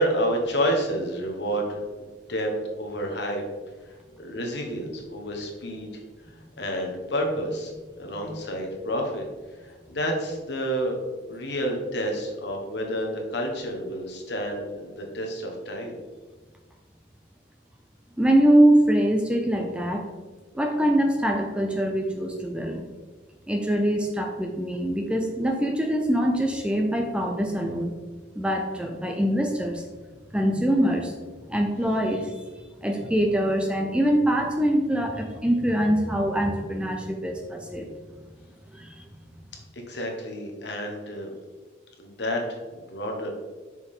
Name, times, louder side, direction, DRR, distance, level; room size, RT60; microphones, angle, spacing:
voice 1, 0.0-2.5 2.8-3.4 3.8-5.9 6.3-9.2 9.6-11.0 11.3-16.0 39.7-41.3 42.0-43.3, equal, 60° left, 1 dB, 1.3 m, -29 dB
voice 2, 18.2-20.1 20.5-22.8 23.5-27.9 28.4-29.8 30.3-31.2 31.5-32.4 32.8-37.9 38.7-39.0, right 1 dB, 5° right, 2 dB, 0.5 m, -23 dB
6.5 x 5.0 x 3.6 m, 1.3 s
head